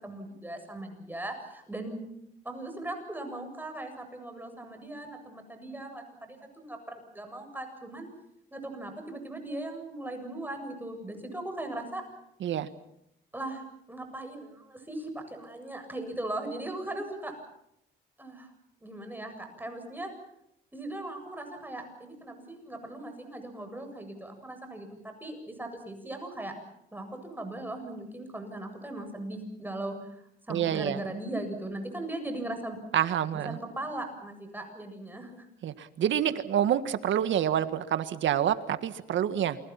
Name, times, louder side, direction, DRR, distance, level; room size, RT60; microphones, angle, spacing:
voice 1, 0.0-2.1 2.4-8.1 8.5-12.0 13.3-13.6 13.9-17.3 18.2-18.5 18.8-20.1 20.7-26.5 26.9-32.8 33.3-35.5, right 1 dB, 10° right, 5 dB, 7.6 m, -39 dB
voice 2, 30.5-31.0 32.9-33.6 35.6-39.6, right 10 dB, 75° right, 11 dB, 1.7 m, -27 dB
29.0 x 24.5 x 5.9 m, 0.78 s
cardioid pair, 90°, 20 cm